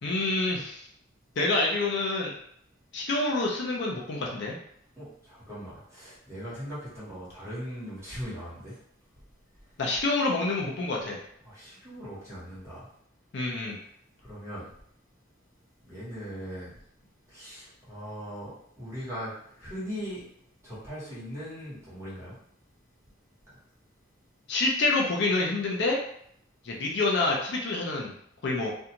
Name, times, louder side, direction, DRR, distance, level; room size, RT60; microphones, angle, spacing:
voice 1, 0.0-0.8 1.4-2.3 2.9-4.6 9.8-11.2 13.3-13.8 24.5-26.0 26.6-28.1 28.4-28.7, left 2 dB, 55° left, -2 dB, 0.5 m, -27 dB
voice 2, 5.0-8.8 11.4-12.9 14.2-14.7 15.8-16.8 17.3-20.2 20.6-22.4, equal, 15° right, -10 dB, 1.3 m, -39 dB
2.5 x 2.3 x 2.8 m, 0.68 s
head